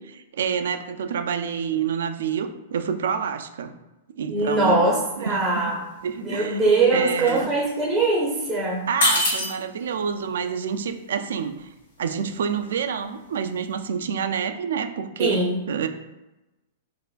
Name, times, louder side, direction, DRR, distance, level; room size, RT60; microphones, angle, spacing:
voice 1, 0.0-3.8 4.2-5.7 6.0-6.6 6.9-7.5 8.9-11.7 12.0-15.9, right 7 dB, 80° right, 9 dB, 0.3 m, -28 dB
voice 2, 4.3-5.8 6.2-8.9 15.2-15.7, right 2 dB, 10° right, -3 dB, 0.6 m, -22 dB
sound 1, 4.8-5.1 5.3-6.0 6.3-8.5 8.9-13.8, left 1 dB, 85° left, 1.3 m, -28 dB
4.4 x 2.4 x 2.3 m, 1.0 s
hypercardioid pair, 145°, 0 cm